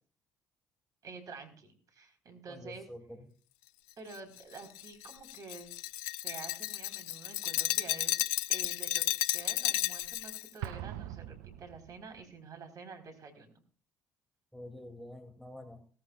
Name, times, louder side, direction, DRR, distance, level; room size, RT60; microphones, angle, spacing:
voice 1, 1.0-2.9 4.0-5.7 6.2-8.2 8.5-9.0 9.3-13.5, right 4 dB, 50° right, 5 dB, 4.2 m, -48 dB
voice 2, 2.5-3.3 14.5-15.8, left 1 dB, ahead, 6 dB, 2.6 m, -47 dB
Glass, 4.1-10.5, left 15 dB, 70° left, 0.6 m, -33 dB
Explosion, 10.6-12.3, right 12 dB, 70° right, 0.5 m, -42 dB
18.5 x 14.0 x 2.4 m, 0.41 s
figure-of-eight pair, 50°, 8 cm